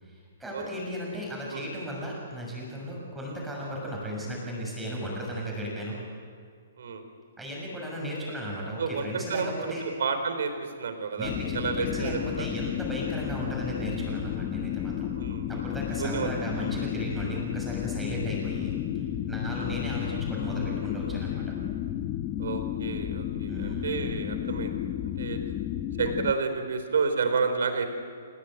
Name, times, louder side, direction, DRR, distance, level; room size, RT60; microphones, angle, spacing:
voice 1, 0.0-6.0 7.4-9.8 11.2-15.1 15.5-21.4 23.4-24.0, equal, 5° right, -4 dB, 6.6 m, -35 dB
voice 2, 8.8-12.5 15.2-15.7 16.0-16.8 19.5-19.6 22.4-25.4 26.0-27.9, right 5 dB, 65° right, 7 dB, 4.1 m, -31 dB
sound 1, 11.2-26.3, left 11 dB, 20° left, 0.9 m, -32 dB
30.0 x 17.5 x 9.2 m, 2.2 s
hypercardioid pair, 170°, 0 cm